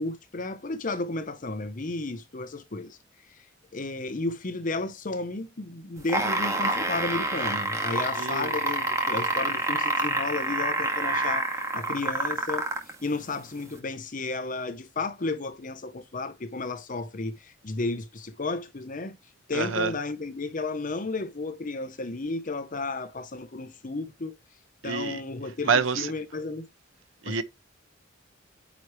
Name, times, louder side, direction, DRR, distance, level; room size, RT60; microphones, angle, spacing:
voice 1, 0.0-3.0 3.3-3.5 3.7-12.7 13.0-19.2 19.5-24.3 24.8-26.7 27.2-27.4, left 3 dB, 40° left, 0.8 m, -33 dB
sound 1, 6.0-12.9 13.8-13.9, right 2 dB, 15° right, 1.9 m, -27 dB
voice 2, 8.2-8.5 19.5-19.9 24.8-25.2 25.6-26.1 27.2-27.4, right 5 dB, 85° right, 0.9 m, -27 dB
9.2 x 4.7 x 3.1 m
head